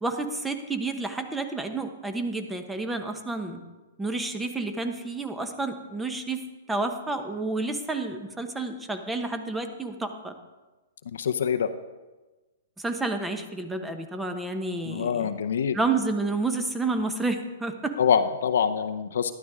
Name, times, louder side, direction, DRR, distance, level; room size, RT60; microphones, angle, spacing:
voice 1, 0.0-3.6 4.0-10.3 12.8-15.3 15.7-18.0, right 3 dB, 10° right, 7 dB, 1.1 m, -30 dB
voice 2, 11.1-11.7 14.9-15.8 18.0-19.3, left 7 dB, 75° left, 8 dB, 0.7 m, -25 dB
12.0 x 12.0 x 3.7 m, 1.2 s
hypercardioid pair, 130°, 0 cm